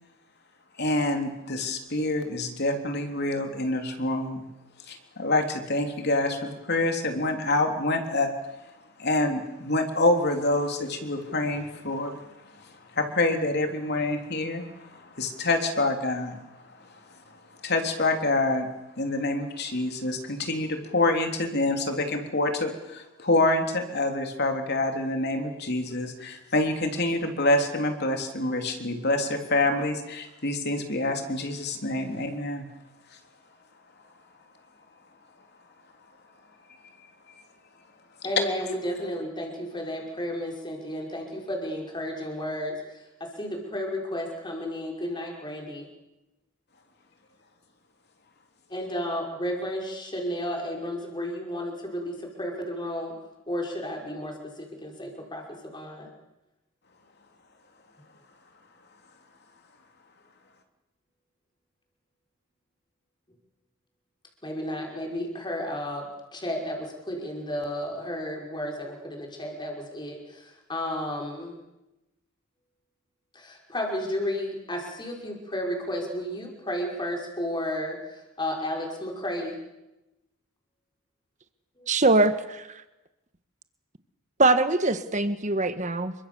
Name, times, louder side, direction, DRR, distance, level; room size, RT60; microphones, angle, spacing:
voice 1, 0.8-4.4 4.9-8.3 9.0-12.3 12.9-16.4 17.6-18.7 19.0-32.6, left 2 dB, 50° left, 4 dB, 3.5 m, -26 dB
voice 2, 38.2-42.8 43.2-45.9 48.7-53.2 53.5-56.1 64.4-71.5 73.3-78.0 78.4-79.6 81.8-81.9, equal, 20° left, 1 dB, 5.5 m, -32 dB
voice 3, 81.9-82.8 84.4-86.1, right 2 dB, 35° right, 10 dB, 1.5 m, -22 dB
29.0 x 24.0 x 7.2 m, 0.96 s
head